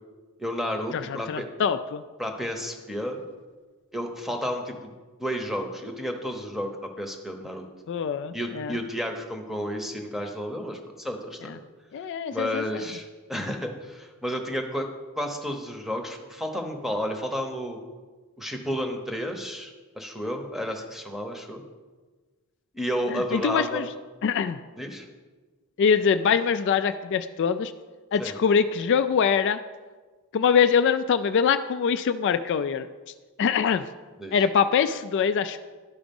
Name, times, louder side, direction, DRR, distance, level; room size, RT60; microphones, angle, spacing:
voice 1, 0.4-1.5 2.2-3.2 3.9-4.9 5.2-6.7 7.0-7.7 8.3-11.5 12.3-14.9 15.2-17.8 18.4-21.6 22.7-23.9 24.8-25.1 28.2-28.3 34.2-34.4, equal, ahead, 3 dB, 0.8 m, -31 dB
voice 2, 0.9-2.0 7.9-8.8 11.9-12.8 23.1-23.9 24.2-24.6 25.8-27.7 28.1-29.6 30.3-32.9 33.4-33.8 34.3-35.6, left 6 dB, 55° left, 10 dB, 0.3 m, -23 dB
11.5 x 4.9 x 5.3 m, 1.4 s
head